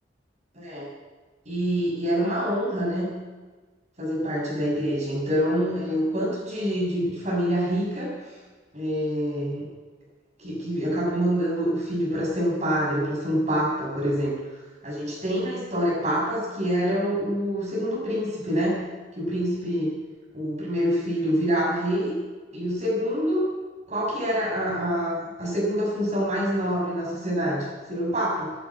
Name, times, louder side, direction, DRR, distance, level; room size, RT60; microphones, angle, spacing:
voice 1, 0.5-0.9 1.4-3.1 4.0-8.4 8.7-9.7 10.4-14.4 14.8-18.8 19.2-19.9 20.3-22.2 22.5-23.5 23.9-28.5, equal, 40° right, -4 dB, 6.6 m, -26 dB
13.0 x 11.5 x 8.7 m, 1.3 s
head